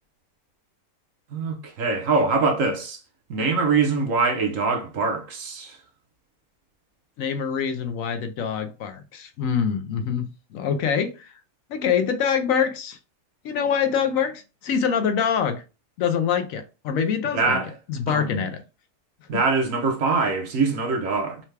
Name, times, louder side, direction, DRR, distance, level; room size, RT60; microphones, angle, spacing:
voice 1, 1.3-3.0 3.3-5.8 17.3-17.7 18.1-18.5 19.3-21.4, right 4 dB, 65° right, 1.2 m, -23 dB
voice 2, 7.2-11.3 11.7-13.0 13.4-15.6 16.0-17.6 17.9-18.6 19.3-19.4, left 7 dB, 70° left, 1.0 m, -25 dB
5.6 x 2.3 x 3.2 m
omnidirectional pair, 1.5 m